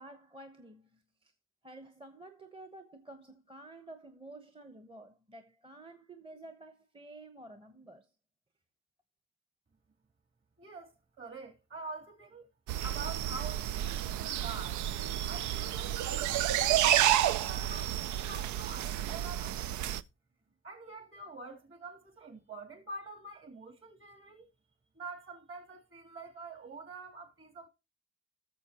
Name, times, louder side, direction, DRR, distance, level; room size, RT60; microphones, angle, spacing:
voice 1, 0.0-1.3 1.6-8.1, right 2 dB, 15° right, 1.0 m, -51 dB
voice 2, 10.6-12.5 12.8-19.9 20.6-24.5 24.9-27.7, right 3 dB, 45° right, 3.2 m, -46 dB
sound 1, 12.7-20.0, right 12 dB, 80° right, 0.5 m, -30 dB
17.5 x 6.8 x 2.9 m
cardioid pair, 90°, 30 cm